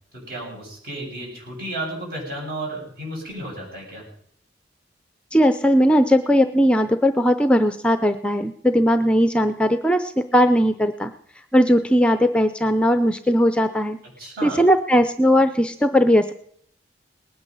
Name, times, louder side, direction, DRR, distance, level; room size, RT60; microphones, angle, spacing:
voice 1, 0.1-4.0 14.2-14.6, right 1 dB, 55° right, -2 dB, 7.2 m, -33 dB
voice 2, 5.3-11.1 11.5-14.0 14.4-16.3, equal, 5° left, 9 dB, 0.5 m, -18 dB
19.5 x 9.6 x 5.4 m, 0.64 s
head